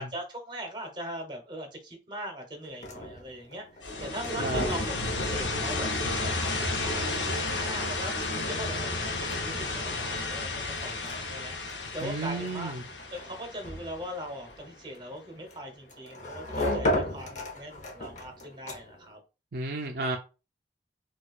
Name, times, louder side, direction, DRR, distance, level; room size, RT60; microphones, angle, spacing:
voice 1, 0.0-8.1 8.5-10.5 10.8-11.6 11.9-12.7 13.1-19.2, equal, 25° right, 0.8 m, -40 dB
sound 1, 2.6-19.1, left 1 dB, 45° left, 0.8 m, -37 dB
sound 2, 3.8-14.5, left 2 dB, 80° left, 0.7 m, -32 dB
voice 2, 12.0-12.8 19.5-20.2, right 2 dB, 60° right, 0.5 m, -32 dB
4.3 x 2.3 x 2.3 m
head